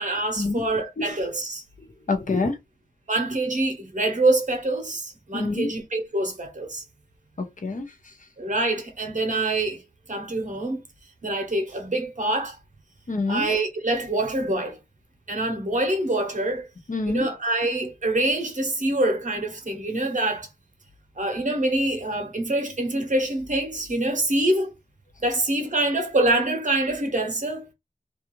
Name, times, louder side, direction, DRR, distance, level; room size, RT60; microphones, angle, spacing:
voice 1, 0.0-1.6 3.1-6.8 8.4-9.8 10.1-10.8 11.2-12.6 13.3-14.8 15.3-16.7 17.1-20.5 21.2-24.7 25.2-27.7, right 2 dB, 50° right, 0.8 m, -25 dB
voice 2, 2.1-2.6 5.3-5.7 7.4-8.3 13.1-13.5 16.9-17.3, left 3 dB, 50° left, 0.6 m, -27 dB
2.4 x 2.3 x 3.0 m
wide cardioid pair, 65°, 17 cm